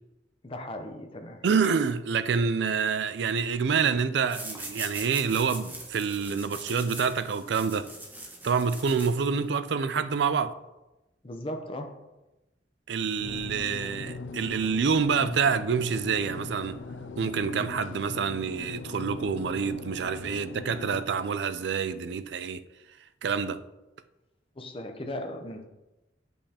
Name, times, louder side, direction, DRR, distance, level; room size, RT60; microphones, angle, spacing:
voice 1, 0.4-1.4 11.2-12.2 24.6-25.6, left 1 dB, 30° left, 0.7 m, -37 dB
voice 2, 1.4-7.9 8.4-10.6 12.9-16.8 17.2-22.6 23.2-23.6, right 6 dB, 70° right, 0.4 m, -27 dB
sound 1, 4.3-9.6, right 2 dB, 10° right, 1.0 m, -41 dB
sound 2, 13.2-21.0, left 3 dB, 90° left, 0.5 m, -40 dB
8.4 x 5.4 x 2.9 m
head